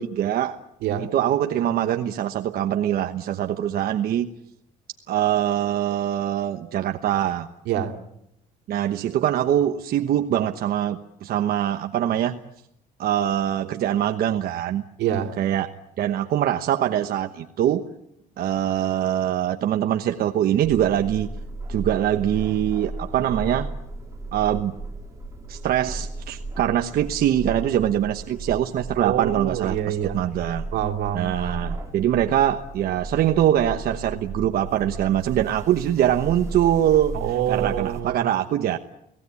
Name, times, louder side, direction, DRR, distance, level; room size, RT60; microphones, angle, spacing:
voice 1, 0.0-0.6 1.0-4.3 5.1-7.5 8.7-12.4 13.0-14.8 15.4-15.7 16.0-17.9 18.4-21.3 21.7-23.7 24.3-24.8 25.5-30.6 31.1-37.2 37.5-38.8, right 11 dB, 65° right, 1.2 m, -23 dB
voice 2, 15.0-15.3 29.0-30.2 30.7-31.3 37.1-38.3, right 10 dB, 85° right, 3.0 m, -26 dB
sound 1, 20.6-38.0, right 2 dB, 20° right, 5.4 m, -35 dB
29.5 x 18.5 x 8.4 m
cardioid pair, 110°, 17 cm